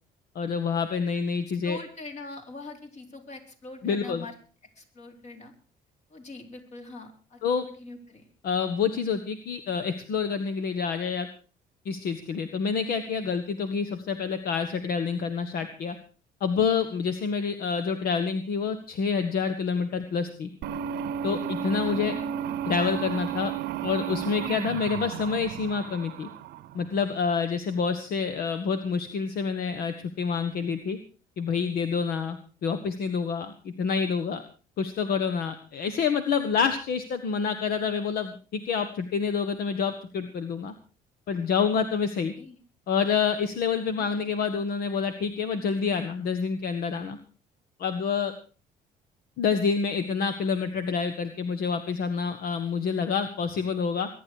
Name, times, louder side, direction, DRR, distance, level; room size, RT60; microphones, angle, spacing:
voice 1, 0.3-1.8 3.8-4.2 7.4-7.6 8.4-11.3 11.8-15.9 16.4-20.5 21.2-22.1 22.7-23.5 23.8-26.3 26.7-31.0 31.4-34.4 34.8-40.7 41.3-42.3 42.9-47.2 47.8-48.3 49.4-54.1, left 6 dB, 65° left, 10 dB, 1.5 m, -27 dB
voice 2, 1.6-4.4 4.8-5.5 6.1-8.3 21.8-22.6 42.4-42.6 44.0-44.1, left 3 dB, 40° left, 5 dB, 4.2 m, -43 dB
sound 1, 20.6-27.0, right 9 dB, 75° right, 0.9 m, -33 dB
22.0 x 11.0 x 4.7 m, 0.37 s
cardioid pair, 110°, 17 cm